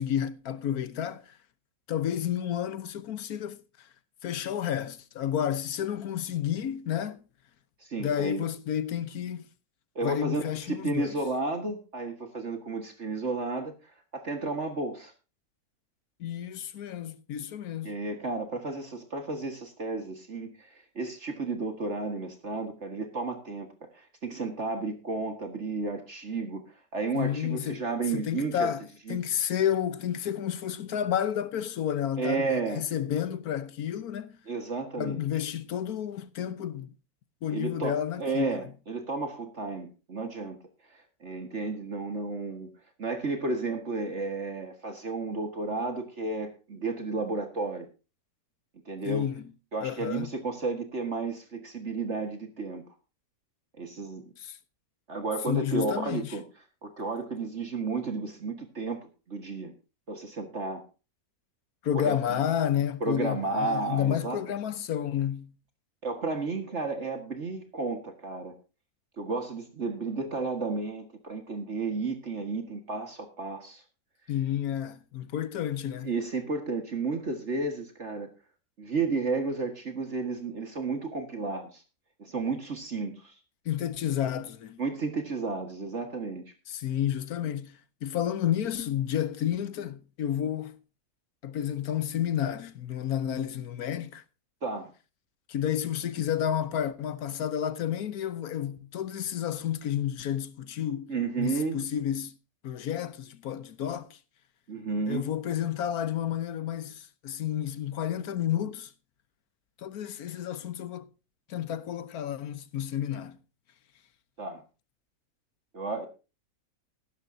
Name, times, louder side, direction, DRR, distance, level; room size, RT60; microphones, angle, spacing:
voice 1, 0.0-1.4 1.9-3.9 4.2-7.2 8.0-9.5 10.0-11.2 16.2-17.9 27.1-27.8 28.1-28.8 29.1-34.4 35.0-36.9 37.4-38.6 49.0-49.4 49.8-50.3 54.4-54.6 55.5-56.3 61.8-65.5 74.3-76.1 83.6-84.8 86.7-90.8 91.4-94.2 95.5-102.3 102.6-104.2 105.1-108.9 109.8-111.1 111.5-113.4, left 10 dB, 80° left, 1.4 m, -31 dB
voice 2, 7.8-8.5 10.0-15.1 17.8-23.7 23.9-28.7 29.1-29.2 32.2-32.8 34.5-35.3 37.5-40.6 40.9-42.7 43.0-47.9 48.9-49.3 49.7-52.8 53.8-54.3 55.1-56.4 56.8-59.0 59.3-59.7 60.1-60.8 61.9-62.4 63.0-64.4 66.0-68.5 69.2-73.8 76.0-78.3 78.8-81.8 82.2-83.3 84.8-86.4 94.6-94.9 101.1-101.8 104.7-105.3 114.4-114.6 115.7-116.1, right 3 dB, 50° right, 2.0 m, -32 dB
14.5 x 13.0 x 2.7 m
omnidirectional pair, 1.6 m